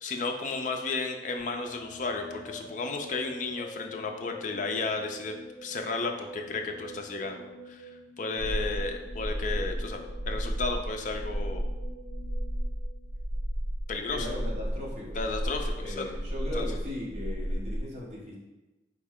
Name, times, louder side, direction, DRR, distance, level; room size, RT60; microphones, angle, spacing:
voice 1, 0.0-5.3 5.6-11.7 13.9-14.3 15.2-16.2 16.5-16.7, left 3 dB, 40° left, 4 dB, 0.4 m, -33 dB
sound 1, 1.4-13.4, left 1 dB, 15° left, 1.4 m, -47 dB
sound 2, 8.4-17.8, equal, 85° right, 0.7 m, -33 dB
voice 2, 14.1-15.1 15.8-18.3, left 1 dB, 35° right, -5 dB, 1.0 m, -38 dB
4.3 x 3.2 x 3.6 m, 1.1 s
head